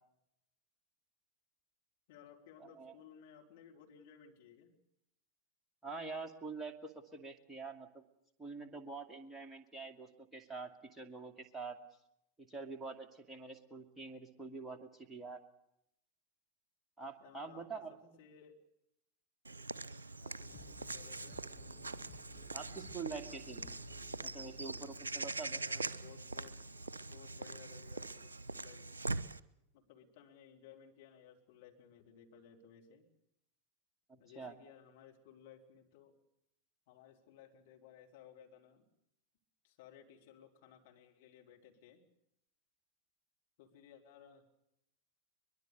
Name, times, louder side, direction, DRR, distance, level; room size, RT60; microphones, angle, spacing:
voice 1, 2.1-4.7 17.2-17.8 18.2-18.6 20.2-21.4 25.5-26.7 27.0-28.9 29.7-33.1 34.2-36.2 36.9-38.9 39.6-42.0 43.6-44.6, left 8 dB, 50° left, 1 dB, 3.7 m, -59 dB
voice 2, 5.8-8.0 8.4-11.8 12.4-15.4 17.0-17.9 22.5-23.7 24.2-25.6 34.1-34.5, right 4 dB, 5° right, 1 dB, 2.4 m, -46 dB
Walk footsteps / Bird vocalization bird call bird song, 19.4-29.4, right 3 dB, 75° right, 0.7 m, -43 dB
sound 1, 20.4-27.3, left 4 dB, 25° left, 6.1 m, -59 dB
23.5 x 21.5 x 6.8 m, 0.80 s
figure-of-eight pair, 90°, 0 cm